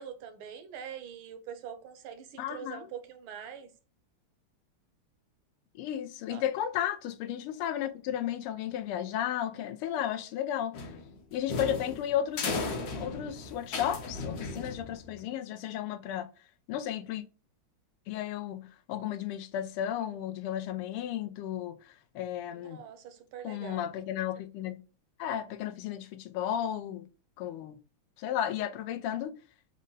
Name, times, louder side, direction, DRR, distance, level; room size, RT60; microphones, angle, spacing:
voice 1, 0.0-3.7 6.3-6.4 22.5-23.9, right 8 dB, 80° right, 1.4 m, -44 dB
voice 2, 2.4-2.9 5.7-10.8 11.3-12.6 12.9-16.3 16.7-17.2 18.1-22.8 23.4-24.8 25.2-27.1 27.4-27.8 28.2-29.4, left 10 dB, 90° left, 1.5 m, -34 dB
sound 1, 10.7-15.2, left 3 dB, 60° left, 1.0 m, -36 dB
5.1 x 2.1 x 3.8 m
omnidirectional pair, 2.4 m